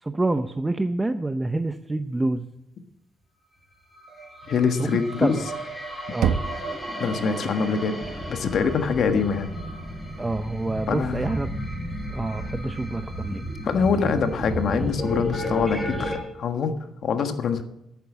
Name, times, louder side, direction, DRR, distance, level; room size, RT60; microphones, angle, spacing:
voice 1, 0.0-2.5 4.8-4.9 5.2-5.4 6.1-6.4 10.2-11.5 12.1-13.5, right 2 dB, 15° right, 9 dB, 0.6 m, -27 dB
sound 1, 3.9-16.2, equal, 5° left, 4.8 m, -33 dB
voice 2, 4.5-5.4 7.0-7.9 8.3-9.5 10.9-11.2 13.6-16.7 17.0-17.6, left 5 dB, 60° left, 7 dB, 1.4 m, -24 dB
Knock, 6.2-7.1, right 8 dB, 80° right, 0.6 m, -26 dB
11.0 x 9.1 x 7.3 m, 0.86 s
cardioid pair, 90°, 0 cm